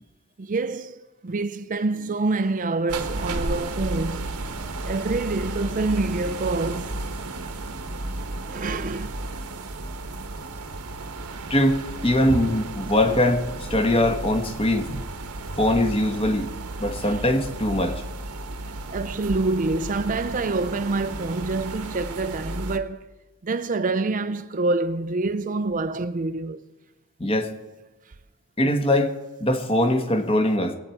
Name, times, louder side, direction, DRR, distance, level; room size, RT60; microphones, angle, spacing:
voice 1, 0.4-4.4 4.8-7.0 8.5-9.2 12.3-12.4 14.9-15.0 17.0-17.2 18.9-23.1 23.4-26.6, right 3 dB, 35° right, 0.5 m, -26 dB
sound 1, 2.9-22.8, right 2 dB, 90° right, 1.3 m, -33 dB
voice 2, 11.5-14.9 15.6-16.5 16.8-18.0 27.2-27.5 28.6-29.1 29.4-30.8, left 1 dB, 25° left, 1.3 m, -22 dB
22.0 x 9.1 x 4.5 m
head